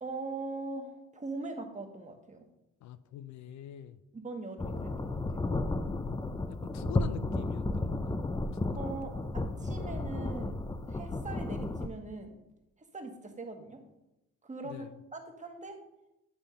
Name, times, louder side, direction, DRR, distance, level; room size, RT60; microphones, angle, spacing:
voice 1, 0.0-2.4 4.1-5.5 8.8-10.6 10.9-12.4 12.9-13.8 14.4-15.8, right 3 dB, 25° right, 4 dB, 1.3 m, -41 dB
voice 2, 2.8-4.0 6.2-8.2 8.7-8.8 14.6-14.9, left 10 dB, 70° left, 13 dB, 0.5 m, -45 dB
sound 1, 4.6-11.9, left 2 dB, 15° left, 0.5 m, -33 dB
9.7 x 3.5 x 5.6 m, 0.90 s
cardioid pair, 90°, 30 cm